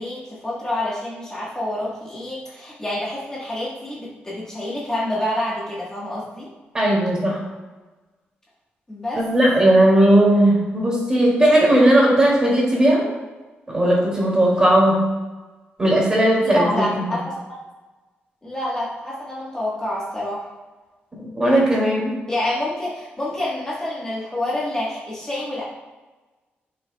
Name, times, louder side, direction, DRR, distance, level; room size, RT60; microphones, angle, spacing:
voice 1, 0.0-6.5 8.9-9.2 16.4-17.6 18.4-20.5 22.3-25.6, left 1 dB, 15° left, -7 dB, 1.3 m, -27 dB
voice 2, 6.7-7.4 9.1-13.0 13.7-15.0 15.8-17.2 21.2-22.1, right 1 dB, 20° right, -4 dB, 2.4 m, -17 dB
11.0 x 5.8 x 2.3 m, 1.2 s
wide cardioid pair, 160°, 4 cm